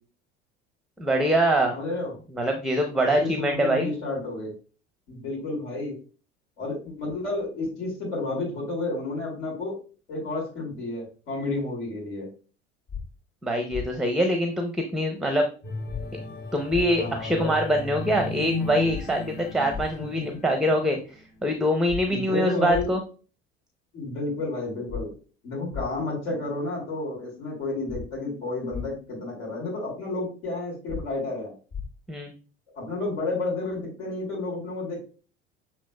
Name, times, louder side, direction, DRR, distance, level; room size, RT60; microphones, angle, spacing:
voice 1, 1.0-1.8 2.3-3.9 13.4-15.5 16.5-21.0 21.4-23.0 32.1-32.3, equal, ahead, 4 dB, 0.6 m, -24 dB
voice 2, 1.7-2.1 3.0-4.5 5.1-5.9 6.6-9.7 10.1-12.3 17.0-17.5 22.1-22.9 23.9-25.1 25.4-31.5 32.8-35.0, left 2 dB, 70° left, -5 dB, 2.4 m, -31 dB
sound 1, 12.9-13.0 13.7-13.9 15.9-16.0 16.7-16.8 18.9-19.0 19.7-19.9 21.9-22.0 22.7-22.9 24.9-25.0 25.7-25.9 27.9-28.0 28.7-28.8 30.9-31.0 31.7-31.8, left 6 dB, 55° left, 1.7 m, -33 dB
sound 2, 15.6-20.9 21.4-21.6, left 3 dB, 30° left, 1.2 m, -35 dB
6.9 x 3.0 x 2.2 m, 0.37 s
hypercardioid pair, 65°, 33 cm